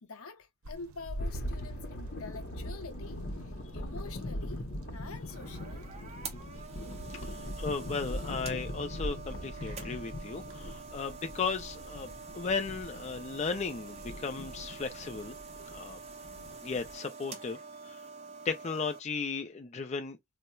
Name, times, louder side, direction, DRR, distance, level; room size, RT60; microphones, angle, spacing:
voice 1, 0.0-4.7 4.9-5.9, left 4 dB, 90° left, 0.8 m, -46 dB
sound 1, 0.6-15.9, equal, 85° right, 0.6 m, -49 dB
sound 2, 1.2-17.0, equal, 50° left, 0.8 m, -42 dB
sound 3, 5.0-19.0, right 4 dB, 30° right, 0.6 m, -46 dB
voice 2, 7.2-12.1 12.3-15.4 15.7-16.0 16.6-17.6 17.8-18.0 18.4-20.2, left 5 dB, 30° left, 0.4 m, -35 dB
4.2 x 2.1 x 2.3 m
head